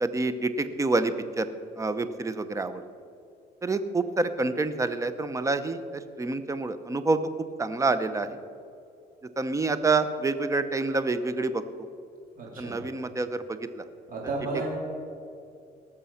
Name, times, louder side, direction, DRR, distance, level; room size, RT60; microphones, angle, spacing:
voice 1, 0.0-1.5 1.8-2.8 3.6-5.8 6.2-7.2 7.6-8.3 9.4-11.9 12.6-13.8, right 3 dB, 20° right, 12 dB, 0.7 m, -27 dB
voice 2, 12.4-12.8 14.1-14.7, right 3 dB, 55° right, -2 dB, 3.5 m, -33 dB
18.0 x 6.9 x 5.7 m, 2.5 s
cardioid pair, 110°, 17 cm